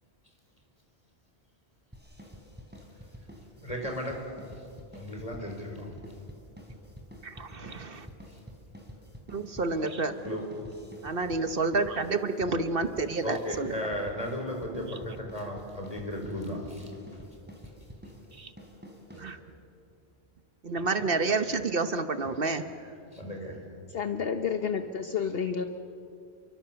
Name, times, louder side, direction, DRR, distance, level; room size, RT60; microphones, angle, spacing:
sound 1, 1.9-19.7, equal, 10° right, 3.8 m, -48 dB
voice 1, 3.6-4.2 4.5-4.7 4.9-5.9 7.6-7.7 8.3-8.4 10.2-10.4 13.2-17.3 22.8-23.6, equal, 35° left, 1 dB, 4.7 m, -36 dB
voice 2, 7.2-8.1 9.3-10.2 11.0-13.7 18.3-18.5 19.2-19.4 20.6-22.6, right 3 dB, 60° right, 9 dB, 1.2 m, -29 dB
voice 3, 23.9-25.6, left 6 dB, 65° left, 7 dB, 1.2 m, -30 dB
30.0 x 23.5 x 7.0 m, 2.5 s
omnidirectional pair, 1.1 m